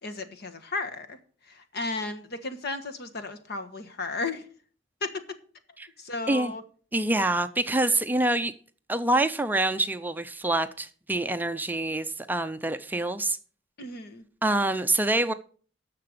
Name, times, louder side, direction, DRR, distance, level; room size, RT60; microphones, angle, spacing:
voice 1, 0.0-1.2 1.5-4.4 5.0-5.1 6.0-6.6 13.8-14.2, left 3 dB, 55° left, 1.3 m, -34 dB
voice 2, 6.9-8.5 8.9-13.4 14.4-15.3, right 2 dB, 10° right, 0.5 m, -26 dB
10.5 x 6.8 x 6.6 m
head